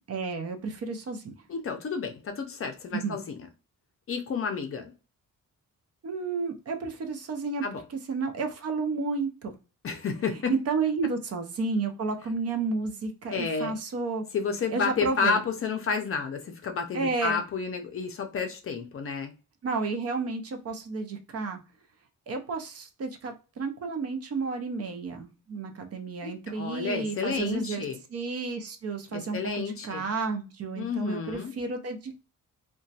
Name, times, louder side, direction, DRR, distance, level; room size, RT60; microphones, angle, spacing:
voice 1, 0.1-1.3 2.9-3.2 6.0-7.6 8.1-9.5 10.5-14.2 14.7-15.4 16.9-17.4 19.6-21.6 22.3-27.8 28.1-32.1, right 4 dB, 45° right, 0.5 m, -31 dB
voice 2, 1.5-3.4 4.1-4.9 7.6-7.8 9.8-10.5 13.3-13.8 14.3-19.3 26.2-28.0 29.1-30.1 30.8-31.5, left 5 dB, 45° left, 0.4 m, -31 dB
2.8 x 2.2 x 2.7 m
wide cardioid pair, 170°, 33 cm